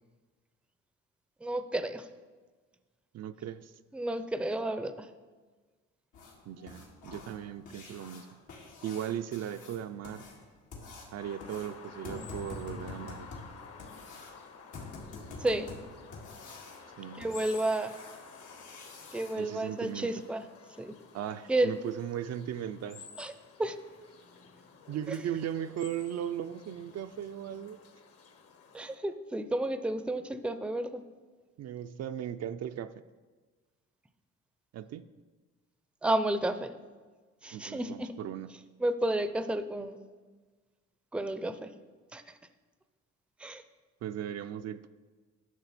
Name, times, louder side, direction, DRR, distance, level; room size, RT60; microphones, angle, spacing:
voice 1, 1.4-2.0 3.9-5.1 15.4-15.7 17.2-17.9 19.1-20.4 20.8-21.0 21.5-21.7 23.2-23.3 23.6-23.8 28.7-31.0 36.0-36.7 37.4-38.1 38.8-40.0 41.1-41.7 42.1-42.2 43.4-43.6, right 1 dB, 5° right, 10 dB, 0.5 m, -31 dB
voice 2, 3.1-3.7 6.5-8.3 8.8-10.2 11.1-13.3 17.0-17.3 19.4-20.1 21.1-23.1 24.9-27.8 31.6-33.0 34.7-35.0 37.5-38.5 44.0-44.9, right 10 dB, 60° right, 10 dB, 0.4 m, -37 dB
sound 1, 6.1-19.3 21.7-21.8 22.2-22.3 22.8-22.9 23.3-23.4 23.9-24.1 24.4-24.5 25.0-25.1, left 3 dB, 90° left, 2.2 m, -47 dB
sound 2, 11.2-29.0, left 5 dB, 50° left, 1.0 m, -52 dB
11.0 x 6.3 x 4.1 m, 1.4 s
cardioid pair, 90°, 30 cm